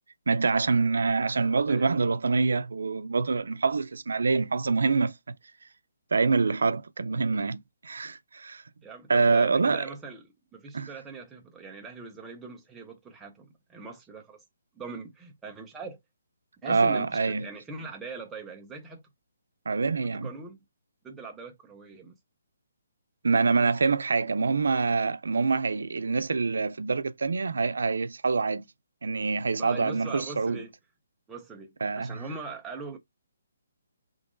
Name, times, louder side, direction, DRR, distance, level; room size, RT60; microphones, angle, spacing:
voice 1, 0.3-5.2 6.1-8.6 9.1-9.8 10.7-10.9 16.6-17.5 19.7-20.3 23.2-28.7 29.0-30.6 31.8-32.2, right 4 dB, 85° right, 0.4 m, -25 dB
voice 2, 8.8-14.4 14.8-16.0 16.6-19.0 20.1-20.6 21.0-22.1 29.6-30.7 31.3-33.0, right 4 dB, 5° right, 0.5 m, -41 dB
3.7 x 3.7 x 2.5 m
hypercardioid pair, 180°, 0 cm